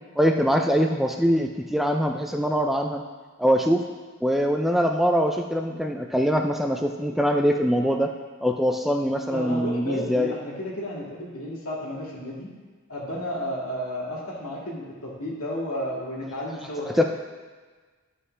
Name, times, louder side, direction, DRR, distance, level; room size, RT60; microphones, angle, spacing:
voice 1, 0.2-3.0 3.4-3.8 4.2-8.1 8.4-10.3 16.9-17.0, equal, ahead, 3 dB, 0.3 m, -23 dB
voice 2, 9.3-12.5 12.9-17.0, equal, 80° left, -5 dB, 2.2 m, -32 dB
11.0 x 5.5 x 3.3 m, 1.4 s
head